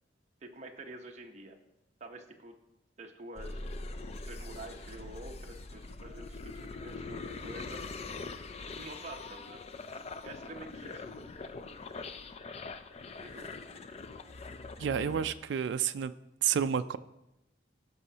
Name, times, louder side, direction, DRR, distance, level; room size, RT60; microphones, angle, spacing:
voice 1, 0.4-1.6 2.0-2.5 3.0-3.7 4.1-7.8 8.7-9.6 10.2-11.1 13.2-13.5, right 2 dB, 35° right, 2 dB, 0.9 m, -47 dB
sound 1, 3.4-15.3, left 3 dB, 35° left, 0.4 m, -43 dB
voice 2, 14.8-16.1 16.4-17.0, right 8 dB, 65° right, 11 dB, 0.3 m, -30 dB
16.0 x 6.2 x 2.8 m, 0.92 s
head